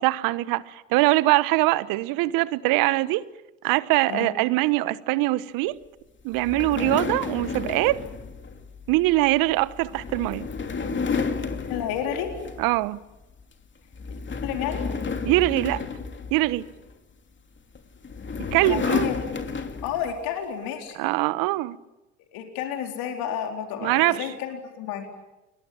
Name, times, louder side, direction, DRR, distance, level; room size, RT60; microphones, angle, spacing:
voice 1, 0.0-3.2 3.6-5.8 6.2-8.0 8.9-10.5 12.6-13.0 15.2-15.8 16.3-16.6 18.5-19.1 21.0-21.8 23.8-24.3, right 19 dB, 60° right, 1.2 m, -22 dB
sound 1, 6.3-12.9 13.2-13.5 13.9-16.9 17.7-20.2, left 5 dB, 30° left, 2.8 m, -31 dB
voice 2, 11.5-12.3 14.1-14.8 18.6-19.1 19.8-21.0 22.3-25.1, left 9 dB, 65° left, 4.1 m, -31 dB
29.0 x 21.5 x 8.9 m
hypercardioid pair, 65°, 37 cm